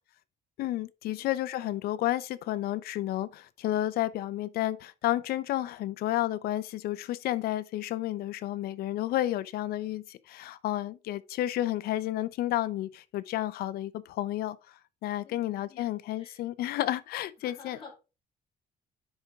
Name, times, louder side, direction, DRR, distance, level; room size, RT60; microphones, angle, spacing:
voice 1, 0.6-14.6 15.0-17.8, left 14 dB, 75° left, 0.7 m, -31 dB
voice 2, 15.2-15.9 16.2-16.4 17.4-18.0, left 4 dB, 30° left, 3.7 m, -51 dB
10.5 x 4.5 x 3.6 m
cardioid pair, 165°, 16 cm